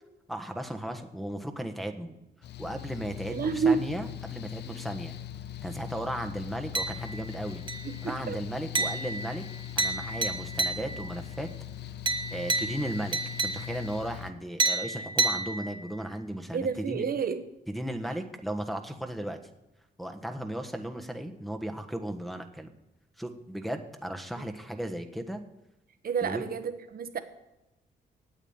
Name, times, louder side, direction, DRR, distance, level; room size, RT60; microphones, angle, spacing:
voice 1, 0.3-2.1 2.6-5.2 5.6-7.6 8.0-9.4 9.8-11.5 12.3-17.0 17.7-19.4 20.0-22.7 23.2-25.4 26.2-26.4, right 1 dB, ahead, 3 dB, 1.4 m, -36 dB
Mechanical fan, 2.4-14.3, left 11 dB, 70° left, 0.6 m, -41 dB
voice 2, 3.3-3.8 7.8-8.4 16.5-17.4 24.3-24.5 26.0-27.2, right 5 dB, 55° right, 10 dB, 1.2 m, -29 dB
sound 1, 6.7-7.3 7.7-8.1 8.7-11.2 12.1-14.0 14.6-16.0, right 3 dB, 25° right, 1.2 m, -31 dB
9.1 x 8.3 x 8.9 m, 0.97 s
cardioid pair, 80°, 18 cm